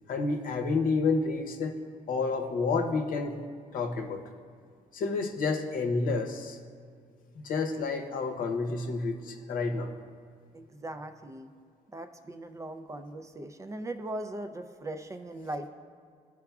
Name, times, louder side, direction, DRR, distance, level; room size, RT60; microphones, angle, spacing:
voice 1, 0.1-1.8 2.1-3.4 3.7-4.2 4.9-6.6 7.4-9.9, left 4 dB, 70° left, 4 dB, 0.8 m, -29 dB
voice 2, 10.5-11.5 11.9-15.7, right 1 dB, 20° right, 7 dB, 0.4 m, -39 dB
13.0 x 4.8 x 2.3 m, 2.1 s
cardioid pair, 95°, 15 cm